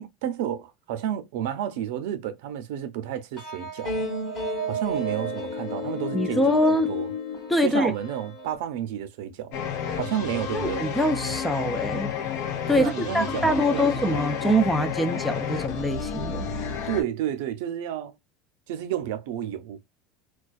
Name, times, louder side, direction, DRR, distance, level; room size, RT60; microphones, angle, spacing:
voice 1, 0.0-4.1 4.7-7.1 7.6-9.5 10.0-10.9 12.8-14.3 16.9-18.1 18.7-19.8, right 10 dB, 80° right, 0.6 m, -31 dB
sound 1, 3.4-8.5, left 2 dB, 30° left, 1.2 m, -31 dB
voice 2, 6.1-6.9 7.5-7.9 10.5-12.1 12.7-16.5, equal, 5° left, 0.4 m, -24 dB
sound 2, 9.5-17.0, left 7 dB, 60° left, 0.7 m, -31 dB
2.3 x 2.3 x 2.3 m
cardioid pair, 160°, 0 cm